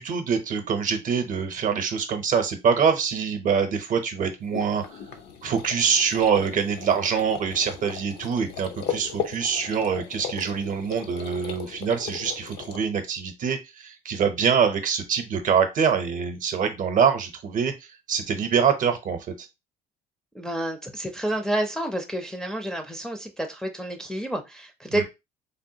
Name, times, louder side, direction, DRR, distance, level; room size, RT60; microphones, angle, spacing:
voice 1, 0.0-5.0 5.4-17.7 18.1-19.5 24.9-25.0, right 6 dB, 50° right, 0.7 m, -24 dB
sound 1, 4.4-12.8, left 8 dB, 75° left, 0.6 m, -37 dB
voice 2, 20.4-25.0, right 1 dB, 5° left, 0.4 m, -29 dB
3.4 x 2.2 x 2.7 m
cardioid pair, 110°, 17 cm